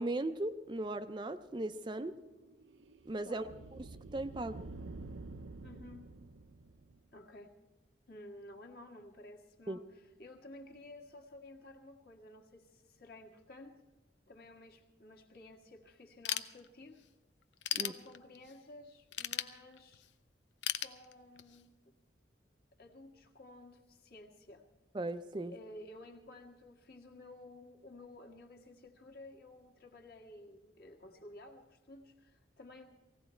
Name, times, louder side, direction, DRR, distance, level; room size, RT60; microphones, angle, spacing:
voice 1, 0.0-2.2 3.1-3.5 4.1-4.6 9.7-9.8 17.8-17.9 24.9-25.5, right 2 dB, 25° right, 10 dB, 0.4 m, -37 dB
sound 1, 1.8-7.2, right 2 dB, 90° right, 0.7 m, -49 dB
voice 2, 3.2-3.6 5.6-6.1 7.1-7.5 8.1-13.8 14.3-17.0 17.7-20.0 20.8-21.7 22.8-24.6 25.5-32.9, left 1 dB, 55° left, 3 dB, 1.7 m, -53 dB
Ratchet pawl / Tools, 16.3-17.0 17.4-18.6 19.1-20.1 20.6-21.6, left 11 dB, 75° left, 0.7 m, -37 dB
19.0 x 16.0 x 4.4 m, 1.1 s
head